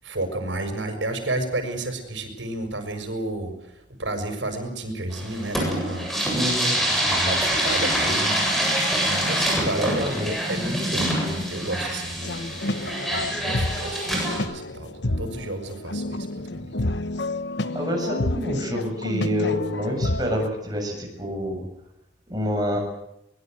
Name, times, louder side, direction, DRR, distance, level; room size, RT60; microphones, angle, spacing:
voice 1, 0.0-6.4 7.1-8.4 9.0-12.6 12.8-16.3 16.5-16.7, right 2 dB, 75° right, 6 dB, 6.6 m, -31 dB
sound 1, 5.1-14.4, equal, ahead, 7.7 m, -25 dB
voice 2, 6.3-6.8 9.6-10.3 17.7-21.6 22.3-22.8, equal, 20° right, 2 dB, 7.5 m, -27 dB
sound 2, 12.2-20.5, left 2 dB, 65° left, 1.2 m, -29 dB
23.5 x 22.0 x 8.0 m, 0.81 s
head